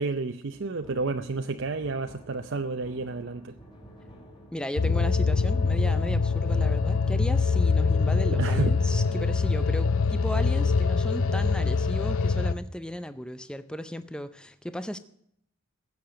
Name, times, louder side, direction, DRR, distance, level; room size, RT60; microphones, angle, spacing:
voice 1, 0.0-3.6 8.3-8.8, right 3 dB, 55° right, 0.6 m, -30 dB
sound 1, 0.5-11.5, right 1 dB, 25° left, 2.7 m, -50 dB
voice 2, 4.5-15.0, equal, 5° left, 0.4 m, -36 dB
sound 2, 4.8-12.5, left 4 dB, 65° left, 0.6 m, -24 dB
16.0 x 6.8 x 7.8 m
head